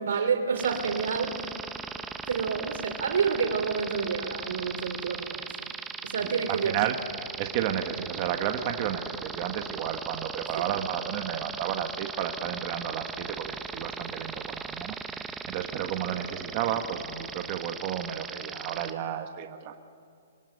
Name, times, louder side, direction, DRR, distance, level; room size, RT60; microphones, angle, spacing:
voice 1, 0.0-1.4 2.3-5.5 6.0-6.8, right 6 dB, 70° right, 8 dB, 3.1 m, -28 dB
sound 1, 0.6-18.9, right 5 dB, 5° right, 0.8 m, -38 dB
voice 2, 6.2-7.0 7.4-19.8, right 10 dB, 30° right, 6 dB, 1.3 m, -32 dB
25.5 x 25.0 x 7.9 m, 2.3 s
hypercardioid pair, 170°, 0 cm